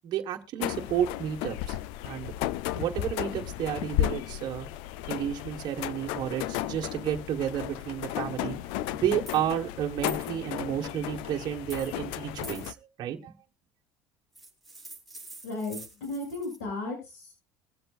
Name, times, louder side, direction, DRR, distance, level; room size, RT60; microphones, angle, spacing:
voice 1, 0.0-1.8 2.0-2.3 2.7-4.7 5.1-8.6 8.9-13.3, right 10 dB, 50° right, 1.5 m, -31 dB
sound 1, 0.6-12.7, left 13 dB, 75° left, 0.6 m, -34 dB
sound 2, 9.3-9.4 10.1-10.3 11.7-12.0 12.4-12.7 14.3-16.6, right 3 dB, ahead, 3.8 m, -45 dB
voice 2, 15.4-17.3, left 2 dB, 90° left, 6.6 m, -35 dB
22.0 x 7.9 x 2.5 m
supercardioid pair, 115°, 9 cm